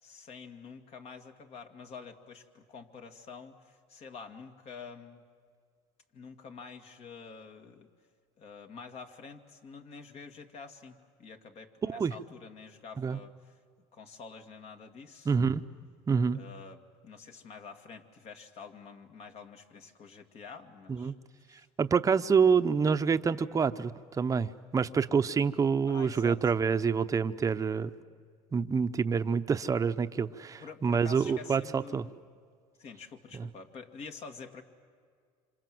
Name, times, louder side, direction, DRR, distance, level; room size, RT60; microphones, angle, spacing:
voice 1, 0.0-5.2 6.1-7.9 8.4-13.6 13.9-15.4 16.3-21.1 21.5-21.7 25.9-26.4 30.6-32.1 32.8-34.6, left 5 dB, 50° left, 6 dB, 2.2 m, -47 dB
voice 2, 15.2-15.6 16.1-16.4 20.9-21.1 21.8-27.9 28.5-32.1 33.3-33.5, right 6 dB, 25° right, 10 dB, 0.8 m, -27 dB
27.0 x 27.0 x 7.8 m, 2.1 s
supercardioid pair, 105°, 13 cm